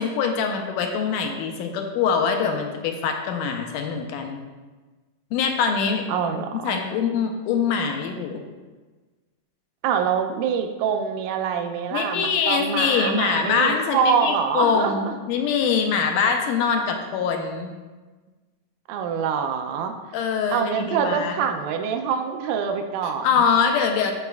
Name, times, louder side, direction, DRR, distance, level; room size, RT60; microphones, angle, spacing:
voice 1, 0.0-4.4 5.3-8.4 11.9-17.7 20.1-21.4 23.2-24.1, left 6 dB, 85° left, 4 dB, 2.2 m, -23 dB
voice 2, 6.1-6.8 9.8-15.2 18.9-19.9 20.5-23.3, right 7 dB, 85° right, 5 dB, 2.1 m, -25 dB
11.0 x 4.1 x 2.3 m, 1.3 s
omnidirectional pair, 3.7 m